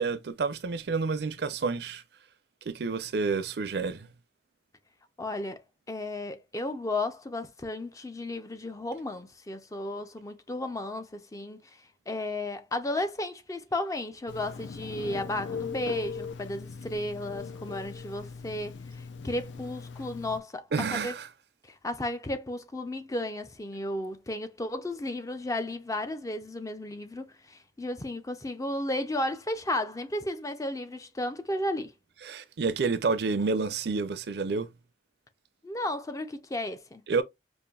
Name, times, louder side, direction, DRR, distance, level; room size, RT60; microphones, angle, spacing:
voice 1, 0.0-2.0 2.7-4.1 20.7-21.3 32.2-34.7 37.1-37.2, right 4 dB, 60° right, 0.5 m, -29 dB
voice 2, 5.2-5.6 5.9-11.8 12.1-21.2 21.6-31.9 35.6-37.0, left 1 dB, 20° left, 0.4 m, -34 dB
Telephone, 14.3-20.4, left 5 dB, 85° left, 0.5 m, -39 dB
5.3 x 2.5 x 2.3 m
head